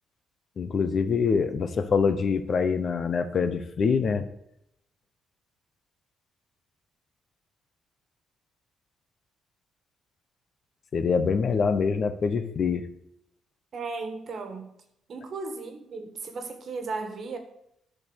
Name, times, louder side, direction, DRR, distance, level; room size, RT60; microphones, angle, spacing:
voice 1, 0.6-4.3 10.9-12.8, left 5 dB, 50° left, 10 dB, 0.8 m, -25 dB
voice 2, 13.7-14.7 15.1-17.4, right 4 dB, 55° right, 7 dB, 1.6 m, -35 dB
10.5 x 4.3 x 6.3 m, 0.77 s
cardioid pair, 90°, 0 cm